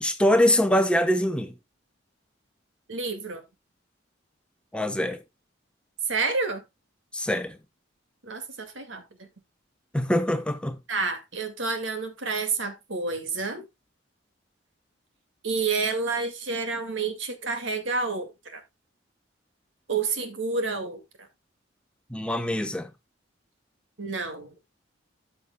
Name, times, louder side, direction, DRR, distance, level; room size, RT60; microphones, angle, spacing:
voice 1, 0.0-1.5 4.7-5.2 7.1-7.6 9.9-10.8 22.1-22.9, left 1 dB, 5° left, 1.0 m, -23 dB
voice 2, 2.9-3.4 6.1-6.6 8.2-9.0 10.9-13.6 15.4-18.6 19.9-21.3 24.0-24.5, right 4 dB, 80° right, 2.1 m, -29 dB
13.0 x 6.9 x 2.3 m
head